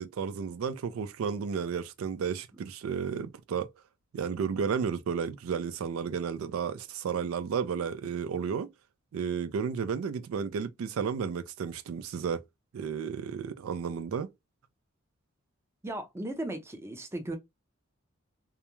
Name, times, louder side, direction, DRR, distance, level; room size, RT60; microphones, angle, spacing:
voice 1, 0.0-3.7 4.1-8.7 9.1-12.4 12.7-14.3, right 6 dB, 85° right, 0.3 m, -32 dB
voice 2, 15.8-17.4, right 1 dB, 15° right, 0.5 m, -36 dB
2.3 x 2.1 x 2.9 m
head